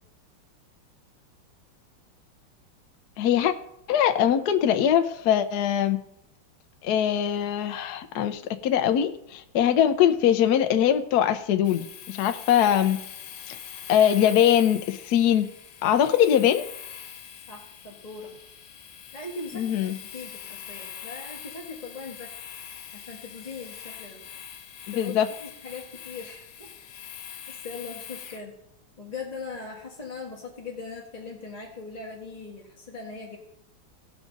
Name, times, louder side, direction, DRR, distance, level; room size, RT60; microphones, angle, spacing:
voice 1, 3.2-3.5 3.9-6.0 6.8-13.0 13.5-13.6 13.9-15.5 15.8-16.6 19.5-20.0 24.9-25.3, left 10 dB, 70° left, 9 dB, 1.0 m, -22 dB
Domestic sounds home sounds, 11.6-28.5, left 9 dB, 85° left, 1.8 m, -43 dB
voice 2, 17.5-18.3 19.1-19.8 20.1-22.3 22.9-24.2 24.9-25.1 25.4-26.7 27.5-28.5 29.0-33.4, left 4 dB, 20° left, -3 dB, 1.4 m, -40 dB
17.5 x 6.2 x 3.9 m, 0.75 s
omnidirectional pair, 2.2 m